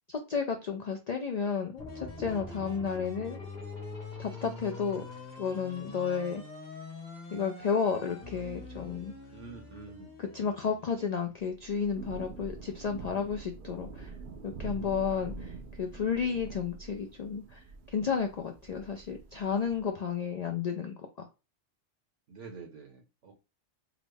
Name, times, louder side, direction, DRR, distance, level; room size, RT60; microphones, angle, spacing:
voice 1, 0.1-3.4 4.2-5.0 5.4-6.4 7.3-9.1 10.2-14.1 14.4-17.6 17.9-20.9, left 6 dB, 70° left, 0.4 m, -32 dB
sound 1, 1.8-11.3, left 3 dB, 40° left, 1.1 m, -44 dB
voice 2, 4.8-5.3 9.3-10.1 22.3-23.3, right 4 dB, 75° right, 1.2 m, -48 dB
Thunder / Rain, 11.4-20.0, right 4 dB, 60° right, 0.6 m, -45 dB
3.6 x 2.0 x 3.3 m
omnidirectional pair, 1.2 m